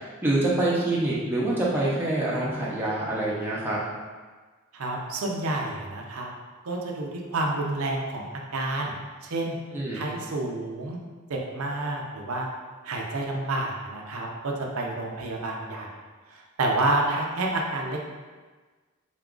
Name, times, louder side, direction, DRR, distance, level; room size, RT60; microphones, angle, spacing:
voice 1, 0.2-3.8 9.7-10.0, right 2 dB, 10° right, -7 dB, 0.6 m, -25 dB
voice 2, 4.7-6.3 6.6-8.3 8.5-9.6 9.9-11.0 11.3-12.5 12.8-15.9 16.3-18.1, right 2 dB, 80° right, 0 dB, 0.5 m, -29 dB
3.8 x 2.4 x 3.7 m, 1.4 s
head